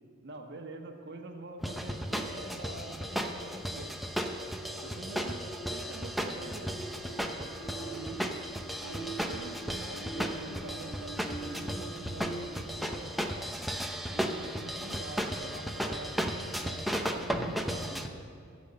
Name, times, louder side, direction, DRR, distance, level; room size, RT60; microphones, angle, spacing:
voice 1, 0.2-3.9 4.8-5.4 5.7-6.7 7.4-7.5 7.7-8.4 8.8-11.2 11.4-13.4 14.1-18.1, right 2 dB, 60° right, 4 dB, 1.3 m, -45 dB
sound 1, 1.6-18.1, equal, ahead, 0.7 m, -35 dB
sound 2, 4.1-14.0 14.5-14.7, right 2 dB, 35° left, 3.7 m, -45 dB
14.0 x 7.5 x 8.6 m, 2.2 s
head